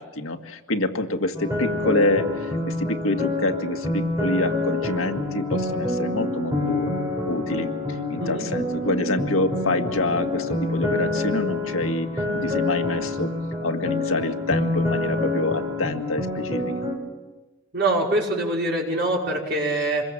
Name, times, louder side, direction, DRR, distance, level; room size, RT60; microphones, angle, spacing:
voice 1, 0.0-6.9 7.2-13.3 13.6-16.7, left 2 dB, 75° left, 5 dB, 2.0 m, -26 dB
sound 1, 1.3-16.9, left 2 dB, 15° right, 5.9 m, -27 dB
voice 2, 17.7-20.0, right 1 dB, 50° right, -2 dB, 5.8 m, -24 dB
26.5 x 22.0 x 7.6 m, 1.1 s
head